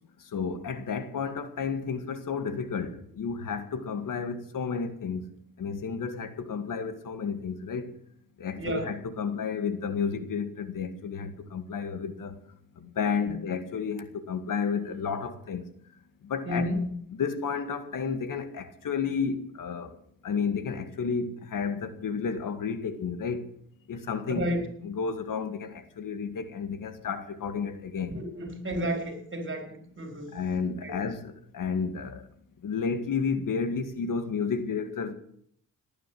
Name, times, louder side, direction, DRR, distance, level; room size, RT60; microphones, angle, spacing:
voice 1, 0.2-5.3 5.6-7.9 8.4-12.4 12.8-15.7 16.2-16.7 17.2-20.0 20.2-23.5 23.9-24.5 24.8-28.2 30.3-32.3 32.6-35.1, left 5 dB, 65° left, 2.0 m, -31 dB
voice 2, 8.6-8.9 16.5-16.9 24.3-24.6 28.1-29.7 30.0-30.3 30.8-31.0, equal, 35° right, 4.5 m, -31 dB
18.5 x 9.4 x 7.8 m
cardioid pair, 75°, 35 cm